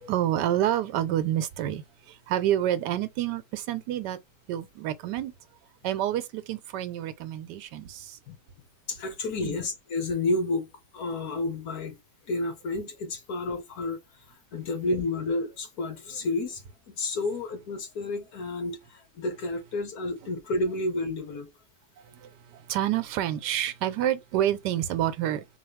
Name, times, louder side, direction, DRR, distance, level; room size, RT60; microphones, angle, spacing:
voice 1, 0.1-4.2 4.5-5.3 5.8-8.2 9.4-9.6 22.0-25.5, right 12 dB, 85° right, 1.2 m, -28 dB
voice 2, 8.9-12.0 12.3-14.0 14.5-18.8 19.1-21.5, left 2 dB, 65° left, 1.5 m, -30 dB
4.1 x 2.3 x 3.2 m
omnidirectional pair, 1.8 m